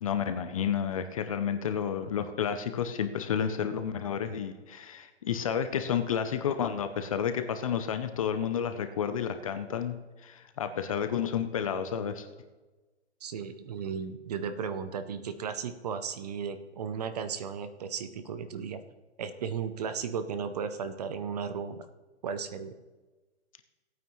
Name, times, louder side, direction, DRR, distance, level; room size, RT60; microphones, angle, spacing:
voice 1, 0.0-12.3, left 8 dB, 30° left, 9 dB, 0.5 m, -31 dB
voice 2, 13.2-18.8 19.2-21.8 22.2-22.7, right 6 dB, 35° right, 11 dB, 0.6 m, -35 dB
17.0 x 9.1 x 3.1 m, 1.2 s
hypercardioid pair, 150°, 35 cm